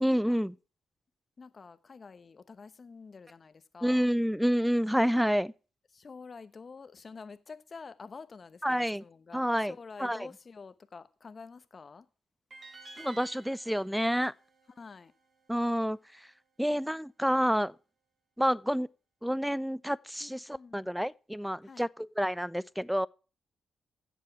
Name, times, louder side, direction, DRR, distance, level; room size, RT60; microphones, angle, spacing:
voice 1, 0.0-0.5 3.8-5.5 8.6-9.0 9.3-9.7 10.0-10.3 13.0-14.3 15.5-16.0 16.6-17.7 18.4-18.9 19.2-23.1, equal, ahead, 0.4 m, -28 dB
voice 2, 1.4-4.1 5.9-12.1 14.7-15.1 20.2-21.0 21.6-21.9, left 4 dB, 45° left, 0.9 m, -48 dB
sound 1, 12.5-15.7, right 3 dB, 50° right, 3.8 m, -52 dB
11.0 x 7.6 x 5.9 m
supercardioid pair, 50°, 0 cm